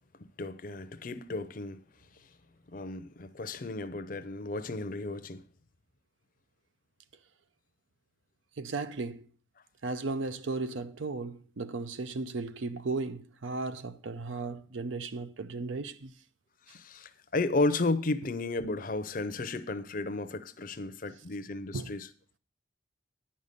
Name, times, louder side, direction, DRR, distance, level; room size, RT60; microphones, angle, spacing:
voice 1, 0.2-1.8 2.7-5.4 16.7-22.1, left 2 dB, 45° left, 0.6 m, -33 dB
voice 2, 8.6-9.2 9.8-16.1 21.7-21.9, right 3 dB, 75° right, 0.6 m, -35 dB
9.7 x 5.4 x 6.6 m
head